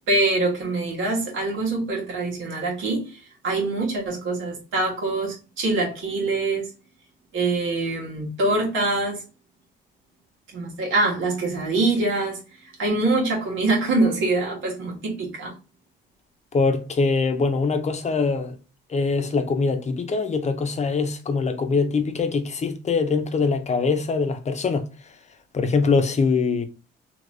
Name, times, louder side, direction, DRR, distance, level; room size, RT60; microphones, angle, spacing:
voice 1, 0.1-6.7 7.3-9.2 10.5-15.5, right 2 dB, 80° right, 1.5 m, -24 dB
voice 2, 16.5-18.5 18.9-24.8 25.5-26.7, left 4 dB, 35° left, 0.7 m, -23 dB
3.2 x 2.8 x 2.6 m
cardioid pair, 90°, 20 cm